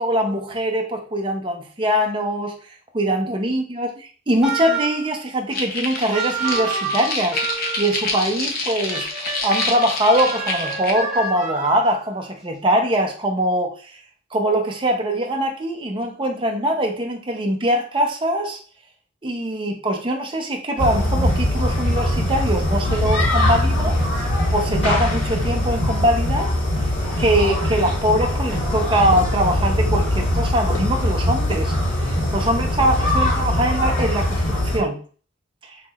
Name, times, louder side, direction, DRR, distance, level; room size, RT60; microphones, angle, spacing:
voice 1, 0.0-2.6 2.9-3.9 4.3-13.9 14.3-18.6 19.2-24.0 24.5-26.5 27.2-31.7 32.0-35.0 35.7-35.8, right 1 dB, 25° right, 2 dB, 0.7 m, -22 dB
sound 1, 4.4-5.1 6.1-8.0 8.9-12.1, right 4 dB, 5° right, 1.0 m, -28 dB
sound 2, 5.5-10.9, left 3 dB, 50° left, 0.8 m, -27 dB
sound 3, 20.8-34.8, left 1 dB, 75° left, 1.8 m, -21 dB
5.9 x 2.9 x 2.4 m, 0.39 s
head